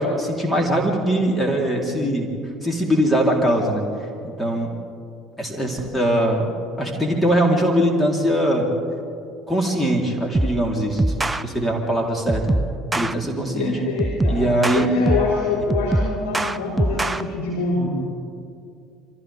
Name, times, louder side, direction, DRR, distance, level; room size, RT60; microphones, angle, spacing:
voice 1, 0.0-2.3 2.6-3.8 4.4-4.7 5.4-6.5 6.8-8.7 9.5-12.6 12.9-13.8 14.2-14.9, right 1 dB, 5° left, -1 dB, 4.1 m, -21 dB
sound 1, 10.3-10.6 11.0-11.4 12.3-13.1 14.0-15.4 15.7-17.2, right 2 dB, 15° right, 0.7 m, -22 dB
voice 2, 13.5-17.9, left 4 dB, 75° left, -7 dB, 4.6 m, -25 dB
30.0 x 24.5 x 3.7 m, 2.5 s
figure-of-eight pair, 60°, 0 cm